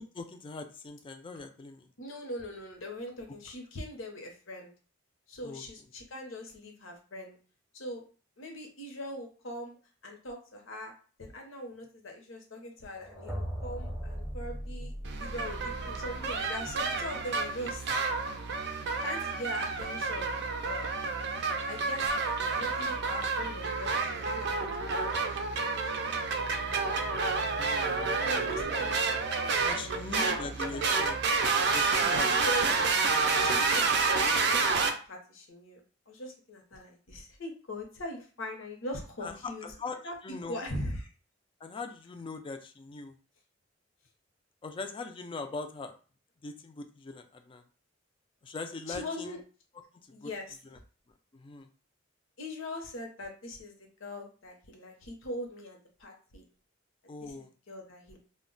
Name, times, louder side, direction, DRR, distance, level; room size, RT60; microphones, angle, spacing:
voice 1, 0.0-1.9 5.4-5.6 29.1-29.3 29.6-31.3 31.7-32.5 39.2-40.0 40.2-40.6 41.6-43.1 44.6-45.9 46.4-47.6 48.4-49.4 50.2-50.3 51.3-51.7 57.1-57.5, left 3 dB, 25° left, 7 dB, 0.3 m, -41 dB
voice 2, 2.0-4.7 5.3-7.4 7.7-8.0 8.4-9.8 10.0-10.9 11.2-14.9 15.2-17.9 19.0-20.3 20.6-20.9 21.7-22.1 22.4-25.8 26.1-26.2 26.6-26.9 28.2-30.0 30.3-30.9 32.4-32.7 33.4-39.7 40.0-41.1 48.9-49.4 50.1-50.6 52.4-56.4 57.2-58.2, left 1 dB, 75° left, 2 dB, 0.8 m, -41 dB
sound 1, 12.9-16.9, equal, 5° right, 0.6 m, -39 dB
sound 2, 15.0-34.9, right 4 dB, 60° right, 0.4 m, -29 dB
2.1 x 2.0 x 3.8 m, 0.38 s
head